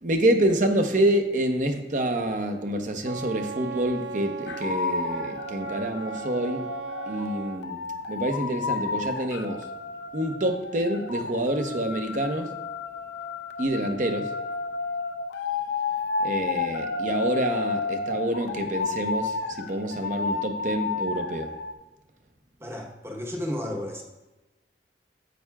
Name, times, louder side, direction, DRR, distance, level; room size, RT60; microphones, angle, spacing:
voice 1, 0.0-6.7 7.1-7.8 8.1-9.6 10.1-12.5 13.6-14.3 16.2-21.5, right 1 dB, 45° right, 5 dB, 0.8 m, -27 dB
Wind instrument woodwind instrument, 3.0-7.6, right 6 dB, 75° right, 0.4 m, -37 dB
sound 1, 4.5-21.7, left 4 dB, 75° left, 0.5 m, -32 dB
voice 2, 22.6-24.0, left 1 dB, 15° right, 0 dB, 0.9 m, -33 dB
9.2 x 8.5 x 2.3 m, 1.1 s
head